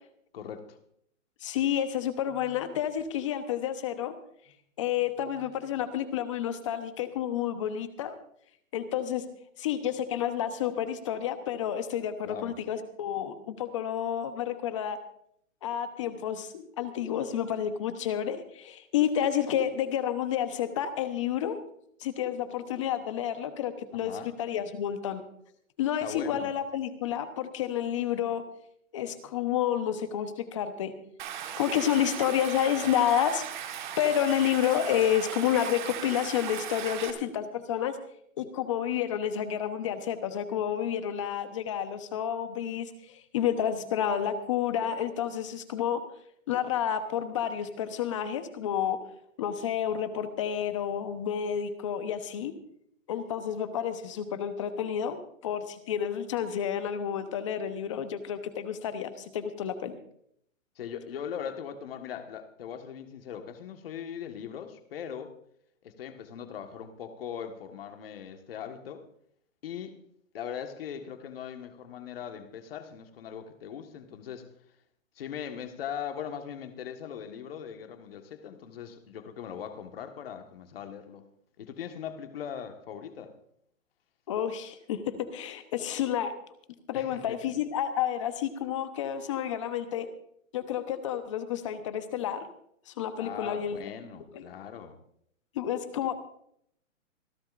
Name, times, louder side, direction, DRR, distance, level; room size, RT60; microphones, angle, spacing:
voice 1, 0.3-0.8 12.2-12.6 23.9-24.3 26.0-26.6 60.8-65.3 65.8-69.0 69.6-70.0 70.3-74.4 75.2-81.2 81.6-83.3 86.9-87.4 93.2-95.0, left 8 dB, 45° left, 6 dB, 1.6 m, -40 dB
voice 2, 1.4-4.1 4.8-8.1 8.7-9.2 9.6-15.0 15.6-21.6 22.0-25.2 25.8-28.4 28.9-30.9 31.6-33.4 34.0-38.0 38.4-46.0 46.5-49.0 49.4-52.5 53.1-55.2 55.4-60.0 84.3-86.3 86.9-90.1 90.5-92.5 92.9-93.8 94.3-94.4 95.5-96.1, left 10 dB, 25° left, 10 dB, 0.9 m, -30 dB
Stream, 31.2-37.1, right 9 dB, 35° right, 1.5 m, -37 dB
26.0 x 11.5 x 2.5 m, 0.68 s
hypercardioid pair, 170°, 40 cm